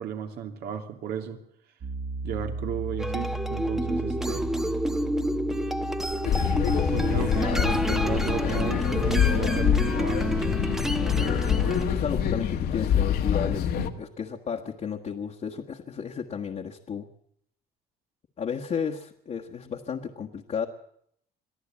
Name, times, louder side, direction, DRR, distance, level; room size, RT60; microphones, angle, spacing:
voice 1, 0.0-1.4 2.2-4.5 6.9-10.6 13.8-13.9, right 8 dB, 75° right, 4 dB, 2.9 m, -34 dB
Piano, 1.8-6.9, right 3 dB, 50° right, 2.2 m, -35 dB
sound 1, 3.0-11.8, equal, ahead, 1.0 m, -29 dB
sound 2, 6.2-13.9, left 8 dB, 70° left, 1.8 m, -25 dB
voice 2, 11.9-13.7 14.0-17.1 18.4-20.7, left 7 dB, 45° left, 0 dB, 1.6 m, -33 dB
23.5 x 14.0 x 8.6 m, 0.70 s
cardioid pair, 110°, 17 cm